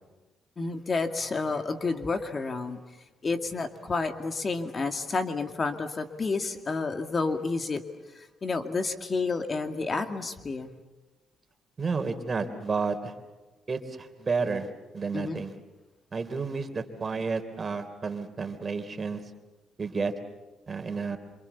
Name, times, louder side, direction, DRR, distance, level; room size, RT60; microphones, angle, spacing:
voice 1, 0.6-2.8 3.2-7.8 8.2-10.7 15.1-15.4, left 3 dB, 40° left, 6 dB, 2.2 m, -30 dB
voice 2, 11.8-13.1 13.7-14.7 14.9-15.5 16.1-19.2 19.8-20.1 20.7-21.2, right 4 dB, 40° right, 8 dB, 3.3 m, -31 dB
27.5 x 27.0 x 7.1 m, 1.2 s
cardioid pair, 70°, 0 cm